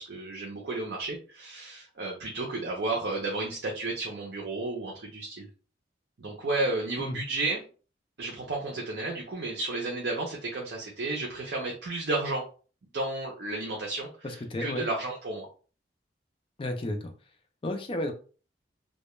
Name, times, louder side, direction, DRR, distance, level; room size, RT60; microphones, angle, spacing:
voice 1, 0.0-5.5 6.2-7.6 8.2-12.4 12.9-15.5, right 2 dB, 65° right, -1 dB, 0.6 m, -32 dB
voice 2, 14.2-14.9 16.6-17.1 17.6-18.1, left 1 dB, 30° left, 5 dB, 0.4 m, -32 dB
2.2 x 2.1 x 3.0 m, 0.38 s
head